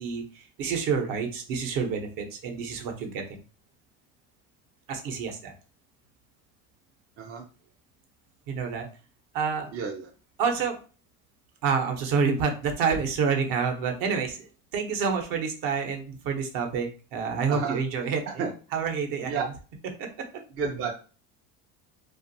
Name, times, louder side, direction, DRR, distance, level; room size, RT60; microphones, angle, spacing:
voice 1, 0.0-3.4 4.9-5.5 8.5-8.9 9.3-9.7 10.4-10.8 11.6-14.5 14.7-18.4 18.7-19.5 20.0-20.1, right 5 dB, 55° right, 4 dB, 0.8 m, -28 dB
voice 2, 9.7-10.1 17.5-17.8 18.3-18.5 19.2-19.4 20.6-20.9, right 5 dB, 35° right, 1 dB, 0.4 m, -30 dB
2.5 x 2.4 x 2.6 m, 0.36 s
supercardioid pair, 105°, 41 cm